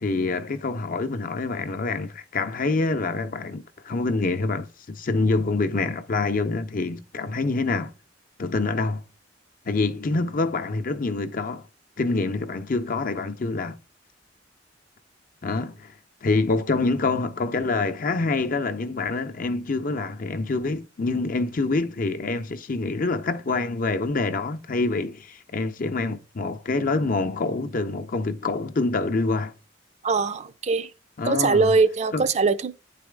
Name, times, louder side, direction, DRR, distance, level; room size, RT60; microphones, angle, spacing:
voice 1, 0.0-7.9 8.4-9.0 9.7-11.7 12.0-13.8 15.4-15.9 16.2-29.5 31.2-31.8 32.1-32.2, left 3 dB, 50° left, 0.7 m, -26 dB
voice 2, 30.0-30.9 31.2-32.7, right 4 dB, 40° right, 0.5 m, -22 dB
9.4 x 4.1 x 3.4 m
head